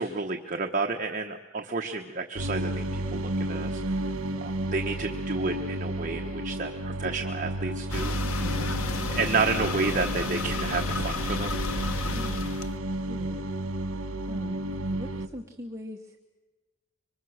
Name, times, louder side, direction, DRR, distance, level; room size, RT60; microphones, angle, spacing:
voice 1, 0.0-3.8 4.4-8.1 9.1-11.6 12.0-12.1, right 3 dB, 35° right, 2 dB, 1.1 m, -31 dB
sound 1, 2.4-15.3, right 1 dB, 75° right, 1.4 m, -32 dB
sound 2, 7.9-12.7, left 2 dB, 80° left, 1.2 m, -31 dB
voice 2, 8.4-8.7 12.1-12.5 13.0-13.4 14.3-14.6 14.9-16.2, left 1 dB, 15° right, 0 dB, 1.2 m, -41 dB
26.5 x 24.5 x 6.5 m, 1.2 s
head